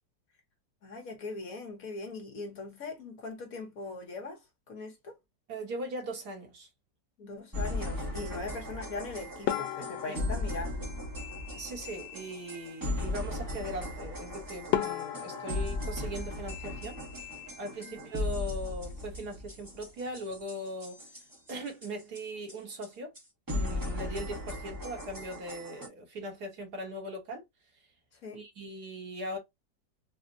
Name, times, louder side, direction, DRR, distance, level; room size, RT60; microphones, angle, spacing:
voice 1, 0.8-5.2 7.2-10.9 17.9-18.0 28.1-28.4, left 3 dB, 60° left, 1.2 m, -40 dB
voice 2, 5.5-6.7 10.1-10.2 11.6-17.0 17.6-21.1 21.5-23.1 23.5-27.4 28.3-29.4, right 1 dB, 65° right, 1.7 m, -39 dB
sound 1, 7.5-22.2 22.5-22.6 22.8-22.9 23.2-23.3 23.5-25.9, left 2 dB, 20° right, 0.6 m, -37 dB
sound 2, 9.5-11.9 14.2-14.3 14.7-17.5 17.7-18.5 18.8-19.0 19.3-19.4 20.1-20.4, left 12 dB, 85° left, 1.3 m, -37 dB
4.1 x 2.1 x 2.5 m
omnidirectional pair, 1.9 m